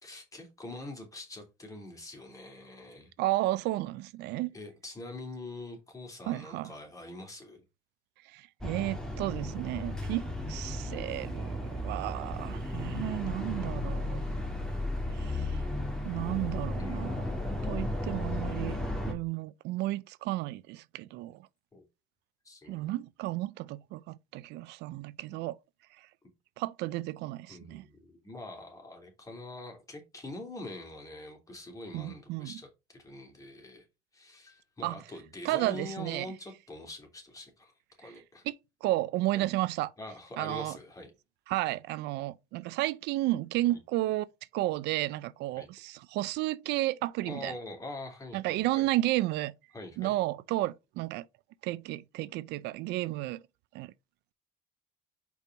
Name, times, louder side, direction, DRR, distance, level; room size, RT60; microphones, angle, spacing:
voice 1, 0.0-3.1 4.5-7.6 16.8-17.9 21.7-21.8 22.4-22.9 27.5-33.8 34.1-37.7 38.0-38.4 39.3-39.4 40.0-41.1 43.7-43.8 45.5-45.7 47.3-48.9 49.7-50.1, left 2 dB, 20° left, 3.1 m, -44 dB
voice 2, 3.2-4.5 6.3-6.7 8.3-11.6 11.8-14.2 15.1-15.6 16.0-17.2 17.7-18.8 19.1-21.4 22.7-25.6 26.6-27.8 31.9-32.5 34.8-35.0 35.4-36.3 38.5-38.6 38.8-39.9 40.4-40.8 41.5-44.3 44.5-47.5 48.3-49.5 50.0-51.2 51.6-53.4 53.7-53.9, right 17 dB, 85° right, 0.5 m, -32 dB
sound 1, 8.6-19.1, left 1 dB, 5° left, 2.1 m, -34 dB
5.3 x 4.6 x 5.2 m
cardioid pair, 110°, 17 cm